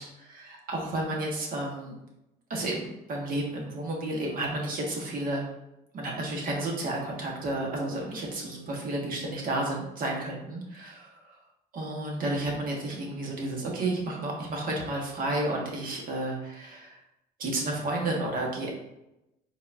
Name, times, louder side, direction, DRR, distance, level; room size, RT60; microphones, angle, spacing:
voice 1, 0.0-1.9 2.5-5.4 5.9-11.2 11.7-17.0 17.4-18.7, right 2 dB, 55° right, -1 dB, 1.4 m, -31 dB
4.6 x 4.1 x 2.7 m, 0.90 s
cardioid pair, 110°, 17 cm